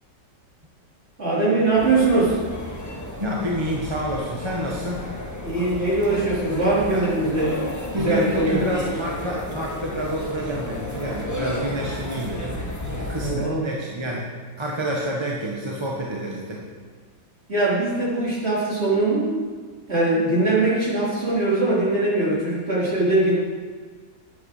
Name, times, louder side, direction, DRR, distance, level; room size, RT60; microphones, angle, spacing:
voice 1, 1.2-2.4 5.4-7.7 7.9-8.6 13.1-13.6 17.5-19.4 19.9-23.3, right 2 dB, 35° right, -8 dB, 4.3 m, -21 dB
sound 1, 1.7-13.3, left 1 dB, 10° left, 1.1 m, -33 dB
voice 2, 3.2-5.0 6.9-7.1 7.9-14.2 14.6-16.6, equal, 15° right, -3 dB, 1.2 m, -28 dB
11.0 x 8.4 x 6.5 m, 1.5 s
omnidirectional pair, 1.9 m